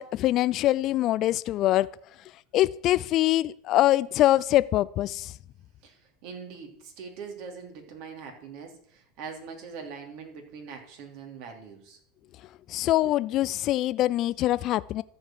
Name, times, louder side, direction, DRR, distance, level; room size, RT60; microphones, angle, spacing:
voice 1, 0.0-1.9 2.5-5.3 12.7-15.0, left 15 dB, 50° left, 17 dB, 0.3 m, -24 dB
voice 2, 5.8-12.0, right 5 dB, 60° right, 4 dB, 2.9 m, -42 dB
13.0 x 4.8 x 7.6 m, 0.65 s
supercardioid pair, 110°, 0 cm